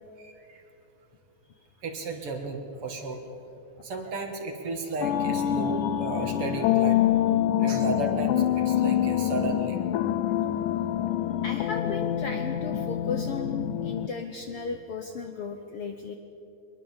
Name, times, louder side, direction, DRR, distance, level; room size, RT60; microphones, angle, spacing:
voice 1, 0.2-0.6 1.8-3.2 3.8-7.0 7.6-9.8, right 3 dB, 50° right, 4 dB, 2.2 m, -34 dB
sound 1, 5.0-14.1, left 11 dB, 90° left, 2.3 m, -26 dB
voice 2, 11.4-16.2, left 5 dB, 70° left, 6 dB, 1.4 m, -35 dB
23.0 x 21.0 x 7.3 m, 3.0 s
omnidirectional pair, 3.6 m